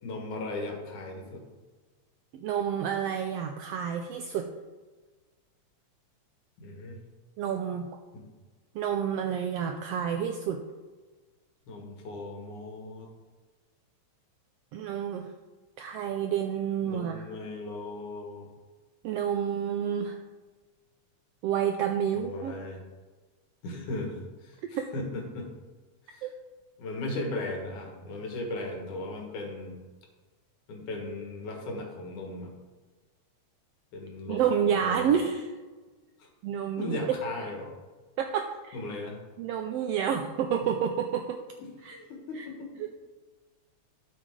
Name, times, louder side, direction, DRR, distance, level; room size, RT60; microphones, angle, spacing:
voice 1, 0.0-1.4 6.6-7.0 8.1-8.2 11.7-13.1 16.8-18.5 22.1-22.8 23.6-25.5 26.1-26.3 26.8-29.8 30.7-32.5 33.9-34.4 34.7-35.2 36.2-36.3 36.8-37.7 38.7-39.2 41.6-42.8, left 2 dB, 85° left, 1 dB, 3.2 m, -37 dB
voice 2, 2.3-4.5 7.4-7.9 8.7-10.6 14.7-15.3 15.8-17.3 19.0-20.2 21.4-22.5 24.8-24.9 26.2-26.3 34.3-35.5 36.4-37.0 38.2-38.8 39.4-41.4 41.8-42.0 42.3-42.5, right 8 dB, 85° right, 4 dB, 1.4 m, -29 dB
12.0 x 6.8 x 3.7 m, 1.3 s
omnidirectional pair, 3.4 m